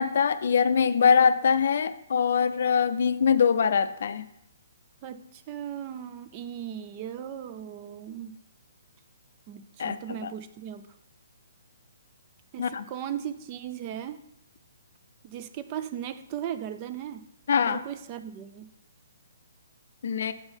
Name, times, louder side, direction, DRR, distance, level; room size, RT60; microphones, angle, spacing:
voice 1, 0.0-4.2 9.8-10.3 12.6-12.8 17.5-17.8 20.0-20.3, left 6 dB, 60° left, 12 dB, 0.4 m, -23 dB
voice 2, 5.0-8.3 9.5-10.8 12.5-14.2 15.2-17.2 17.7-18.7, right 10 dB, 30° right, 11 dB, 0.4 m, -37 dB
7.6 x 3.9 x 4.4 m, 0.78 s
hypercardioid pair, 145°, 0 cm